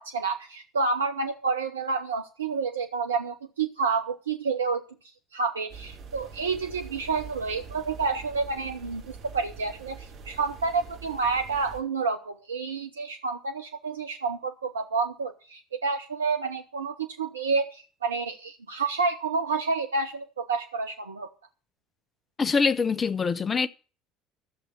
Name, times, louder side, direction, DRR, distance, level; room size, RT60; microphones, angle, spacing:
voice 1, 0.0-4.8 5.3-21.3, right 4 dB, 85° right, 0.7 m, -29 dB
sound 1, 5.7-11.8, right 5 dB, 55° right, 3.0 m, -45 dB
voice 2, 22.4-23.7, left 5 dB, 30° left, 0.8 m, -24 dB
13.5 x 7.1 x 7.0 m
figure-of-eight pair, 60°, 0 cm